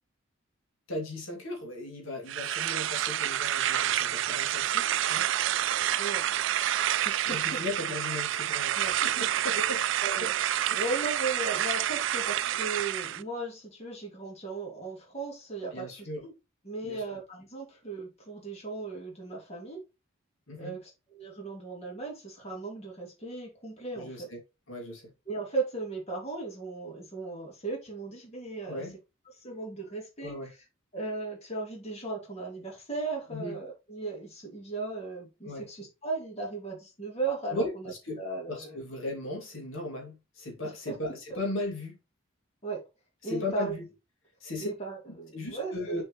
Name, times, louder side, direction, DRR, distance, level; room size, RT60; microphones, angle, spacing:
voice 1, 0.9-5.3 7.2-9.8 10.2-10.3 10.7-10.8 15.7-16.2 16.8-17.0 20.5-20.8 23.9-24.4 24.7-25.1 28.6-28.9 30.2-30.5 33.3-33.6 35.4-35.7 37.5-38.2 38.5-42.0 43.2-43.8 44.4-44.7 45.3-46.0, left 2 dB, 75° left, 2.5 m, -37 dB
sound 1, 2.3-13.2, right 11 dB, 65° right, 0.3 m, -28 dB
voice 2, 7.0-7.6 8.7-8.9 9.5-9.6 10.0-10.3 10.7-16.3 16.6-19.8 20.6-24.3 25.3-28.9 29.4-30.6 30.9-38.8 40.6-41.0 41.3-41.4 42.6-42.8 43.2-43.7 44.6-46.0, right 3 dB, 30° left, 2.5 m, -37 dB
6.5 x 5.2 x 3.1 m
head